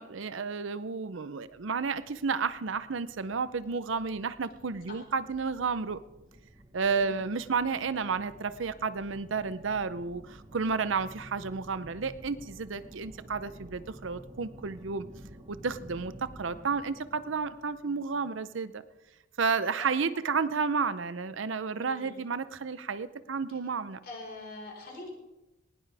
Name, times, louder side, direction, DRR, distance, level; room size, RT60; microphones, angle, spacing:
voice 1, 0.0-6.0 6.7-15.1 15.5-18.8 19.4-24.0, right 5 dB, 70° right, 14 dB, 0.6 m, -31 dB
sound 1, 1.5-18.4, equal, 25° right, 1.3 m, -52 dB
voice 2, 21.8-22.3 23.5-23.6 24.0-25.1, left 2 dB, 50° left, 0 dB, 4.6 m, -44 dB
19.5 x 17.0 x 3.4 m, 1.0 s
head